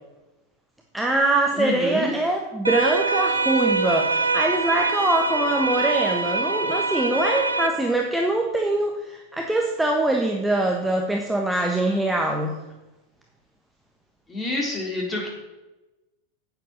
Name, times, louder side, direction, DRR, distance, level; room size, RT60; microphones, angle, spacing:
voice 1, 0.9-12.5, right 2 dB, 5° right, 1 dB, 1.2 m, -23 dB
voice 2, 1.5-2.1 14.3-15.3, left 2 dB, 15° left, 0 dB, 3.6 m, -27 dB
sound 1, 2.6-7.7, right 4 dB, 80° right, 0.8 m, -24 dB
9.2 x 9.1 x 6.4 m, 1.0 s
figure-of-eight pair, 90°, 0 cm